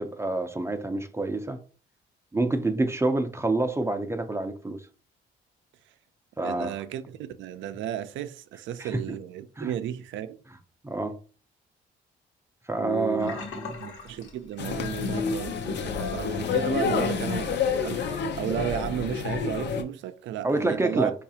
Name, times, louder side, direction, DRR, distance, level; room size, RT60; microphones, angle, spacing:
voice 1, 0.0-1.6 2.3-4.8 6.4-6.7 8.8-8.9 9.6-9.7 10.8-11.1 12.7-13.7 20.4-21.1, right 2 dB, 15° right, 0.5 m, -27 dB
voice 2, 6.4-10.4 12.7-13.3 13.8-21.1, right 11 dB, 75° right, 0.4 m, -33 dB
Sink (filling or washing), 13.2-15.2 15.5-15.8 16.2-16.3, left 4 dB, 85° left, 1.1 m, -40 dB
sound 1, 14.6-19.8, left 6 dB, 60° left, 0.6 m, -28 dB
4.6 x 2.4 x 2.7 m
cardioid pair, 90°, 20 cm